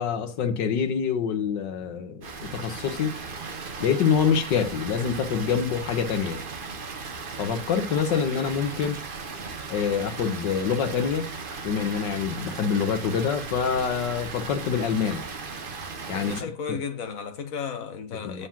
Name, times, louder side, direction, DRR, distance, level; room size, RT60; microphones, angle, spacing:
voice 1, 0.0-3.1 3.8-6.4 7.4-9.0 9.7-11.3 11.6-15.2 16.1-16.3 18.2-18.5, left 7 dB, 85° left, 1.7 m, -26 dB
Water, 2.2-16.4, right 4 dB, 40° right, 0.9 m, -37 dB
voice 2, 16.1-18.5, left 6 dB, 55° left, 1.5 m, -34 dB
7.4 x 5.0 x 5.7 m
omnidirectional pair, 1.9 m